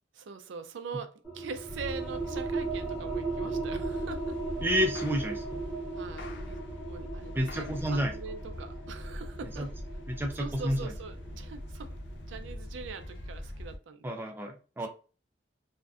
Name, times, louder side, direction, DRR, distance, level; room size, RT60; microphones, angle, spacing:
voice 1, 0.1-4.4 6.0-9.7 10.3-12.0 12.3-14.1 14.8-14.9, right 5 dB, 85° right, 0.4 m, -43 dB
sound 1, 1.2-12.5, right 3 dB, 15° left, 0.8 m, -37 dB
sound 2, 1.6-13.8, left 1 dB, 80° left, 0.5 m, -42 dB
voice 2, 4.6-5.6 7.3-8.1 9.6-9.7 10.1-10.9 14.0-14.9, equal, 10° right, 0.3 m, -30 dB
2.5 x 2.1 x 2.3 m
head